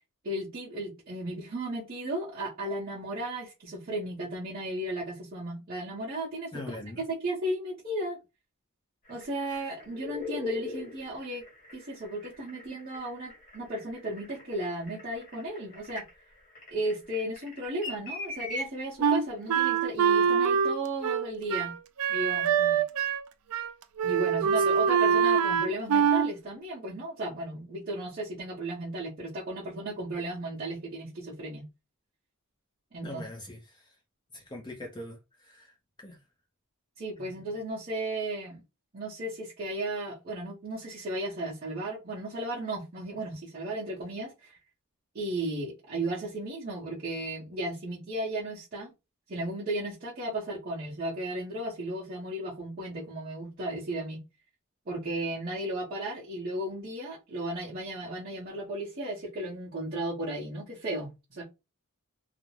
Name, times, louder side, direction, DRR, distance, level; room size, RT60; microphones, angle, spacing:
voice 1, 0.2-6.8 7.1-8.2 9.1-11.5 11.7-16.0 16.7-21.7 22.1-22.8 24.0-31.6 32.9-33.2 37.0-38.6 38.9-44.5 45.1-48.9 49.3-54.2 54.9-61.4, right 1 dB, 45° right, 0.7 m, -35 dB
voice 2, 6.5-7.0 9.5-9.6 24.6-24.7 33.0-33.9 34.3-36.2 37.2-37.5, left 1 dB, 20° left, 0.5 m, -43 dB
sound 1, 9.0-18.7 19.8-19.9, left 2 dB, 40° left, 1.3 m, -41 dB
Wind instrument woodwind instrument, 19.0-23.3 23.5-23.7 24.0-26.3, right 7 dB, 80° right, 0.3 m, -24 dB
2.4 x 2.0 x 3.0 m
head